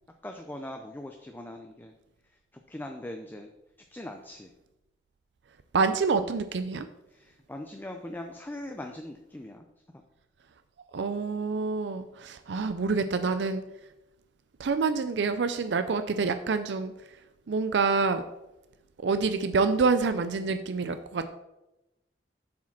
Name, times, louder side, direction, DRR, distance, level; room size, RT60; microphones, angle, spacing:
voice 1, 0.2-1.9 2.5-3.5 3.9-4.5 7.1-9.7 9.9-10.0, left 1 dB, 10° left, 4 dB, 0.5 m, -41 dB
voice 2, 5.7-6.9 10.9-13.6 14.6-16.9 17.5-18.2 19.0-21.3, right 4 dB, 75° right, 10 dB, 0.5 m, -27 dB
7.3 x 4.9 x 5.8 m, 0.95 s
head